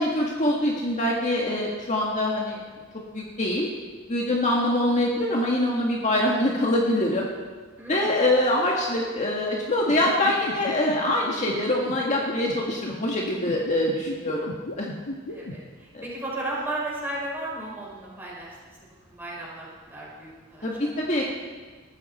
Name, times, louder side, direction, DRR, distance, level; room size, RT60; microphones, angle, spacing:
voice 1, 0.0-2.6 3.1-3.7 4.1-7.3 7.9-14.9 15.9-16.0 20.6-21.2, left 1 dB, 35° left, -2 dB, 1.8 m, -24 dB
voice 2, 7.8-8.3 15.3-18.8 19.0-21.1, right 2 dB, 10° right, -6 dB, 6.2 m, -35 dB
sound 1, 9.7-15.6, left 1 dB, 80° left, 1.5 m, -34 dB
20.5 x 13.5 x 4.4 m, 1.4 s
head